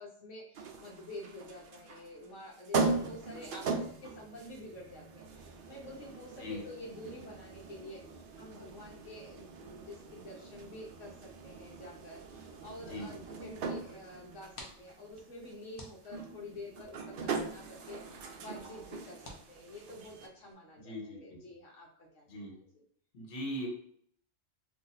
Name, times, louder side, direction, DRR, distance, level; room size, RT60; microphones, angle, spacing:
voice 1, 0.0-19.2 19.5-22.5, left 1 dB, 85° left, -2 dB, 1.1 m, -48 dB
sound 1, 0.5-20.3, right 4 dB, 60° right, 0.6 m, -40 dB
sound 2, 14.2-20.5, left 1 dB, 50° left, 0.9 m, -56 dB
voice 2, 20.8-21.4 22.3-22.5 23.1-23.7, left 1 dB, 70° left, 0 dB, 1.2 m, -40 dB
2.7 x 2.6 x 4.0 m, 0.63 s
omnidirectional pair, 1.3 m